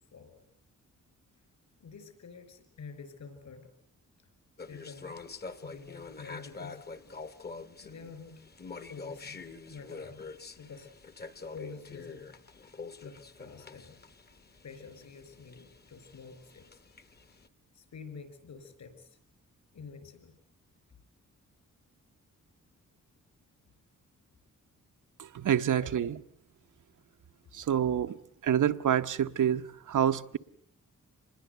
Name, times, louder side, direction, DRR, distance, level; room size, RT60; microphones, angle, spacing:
voice 1, 0.1-0.4 1.8-3.7 4.2-4.3 4.7-5.2 5.6-6.8 7.8-8.4 8.9-10.2 10.6-10.9 11.5-12.4 13.0-14.0 14.6-16.8 17.7-19.2 19.7-20.4 25.8-25.9, left 5 dB, 65° left, 5.2 m, -48 dB
sound 1, 4.6-17.5, left 4 dB, 30° left, 1.2 m, -46 dB
voice 2, 25.3-26.1 27.5-28.1 28.4-30.4, right 9 dB, 75° right, 1.0 m, -27 dB
26.5 x 21.0 x 8.0 m
wide cardioid pair, 180°, 31 cm